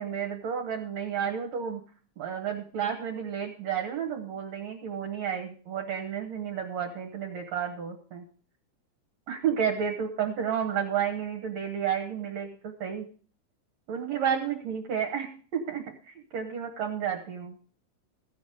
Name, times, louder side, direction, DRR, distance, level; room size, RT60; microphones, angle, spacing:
voice 1, 0.0-1.8 2.2-8.2 9.3-13.1 13.9-17.6, right 8 dB, 65° right, 2 dB, 2.4 m, -31 dB
15.5 x 5.3 x 6.5 m, 0.43 s
omnidirectional pair, 3.6 m